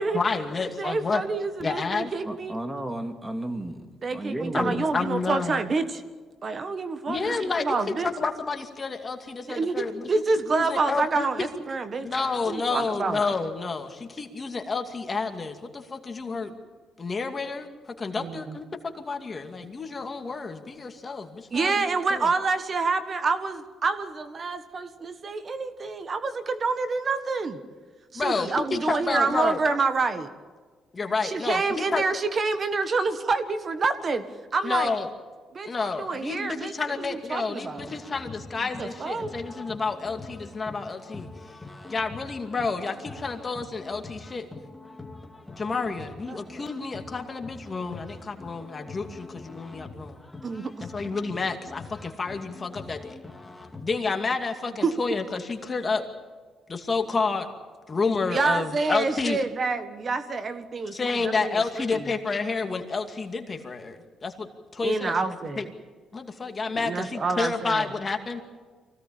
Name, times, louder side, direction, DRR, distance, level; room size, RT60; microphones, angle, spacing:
voice 1, 0.0-1.2 1.6-2.1 4.5-5.6 7.1-10.1 10.5-11.5 12.0-16.5 17.0-22.3 28.1-29.6 30.9-32.0 34.6-35.1 35.6-41.3 41.9-44.5 45.6-50.2 50.8-53.2 53.8-56.0 56.7-57.5 57.9-59.4 60.9-65.2 65.6-65.7 66.1-68.4, left 4 dB, 30° left, 5 dB, 2.5 m, -30 dB
voice 2, 0.8-2.6 4.0-6.0 6.4-8.1 9.5-12.1 12.5-13.2 18.1-18.6 21.5-27.6 28.1-30.3 31.2-34.2 34.5-34.9 35.5-37.9 38.8-39.3 46.3-46.4 50.4-50.9 54.8-54.9 58.3-62.1 64.8-65.7 66.7-67.8, right 4 dB, 40° right, 10 dB, 1.5 m, -28 dB
voice 3, 2.2-4.8, right 1 dB, 15° right, 6 dB, 2.2 m, -33 dB
sound 1, 37.6-53.8, left 2 dB, 10° left, 2.5 m, -44 dB
24.0 x 17.0 x 8.8 m, 1.5 s
cardioid pair, 90°, 0 cm